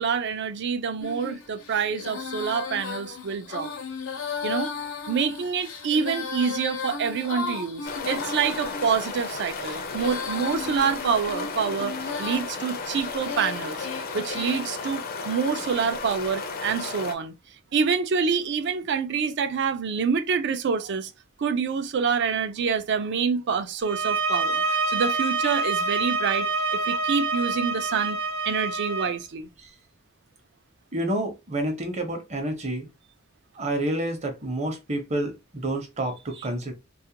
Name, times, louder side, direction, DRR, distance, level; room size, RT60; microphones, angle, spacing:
voice 1, 0.0-3.7 4.4-4.7 5.1-13.9 14.1-17.3 17.7-21.1 21.4-28.2 28.5-29.5, right 6 dB, 60° right, 0.4 m, -27 dB
Female singing, 1.0-14.6, left 5 dB, 85° left, 0.7 m, -35 dB
sound 1, 7.8-17.1, left 4 dB, 45° left, 0.4 m, -34 dB
sound 2, 23.8-29.2, right 3 dB, 75° right, 0.8 m, -26 dB
voice 2, 30.9-32.9 33.6-36.7, right 1 dB, 35° right, 0.7 m, -29 dB
2.3 x 2.1 x 2.8 m
head